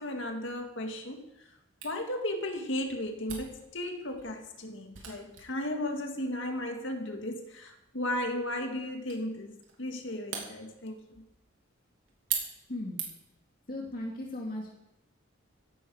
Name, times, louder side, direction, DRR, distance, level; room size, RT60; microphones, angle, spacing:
voice 1, 0.0-1.5 1.8-11.2, left 1 dB, 70° left, 4 dB, 2.1 m, -35 dB
Camera, 1.8-13.4, right 7 dB, 80° right, 3.3 m, -43 dB
voice 2, 12.7-13.0 13.7-14.7, left 1 dB, 50° left, -1 dB, 2.3 m, -37 dB
16.5 x 11.0 x 4.9 m, 0.89 s
head